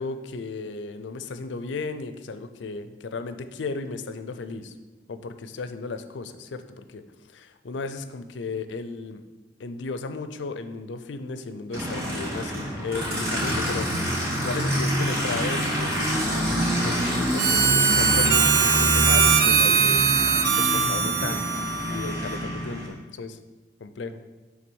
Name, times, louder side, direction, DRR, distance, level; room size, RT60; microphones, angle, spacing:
voice 1, 0.0-4.7 5.1-7.0 7.3-9.2 9.6-14.1 14.4-20.1 20.6-23.4 23.8-24.2, left 4 dB, 90° left, 10 dB, 0.5 m, -35 dB
Aircraft, 11.7-22.9, equal, 55° right, 2.4 m, -27 dB
Harmonica, 17.4-22.6, right 6 dB, 70° right, 0.6 m, -21 dB
6.0 x 3.8 x 6.1 m, 1.2 s
head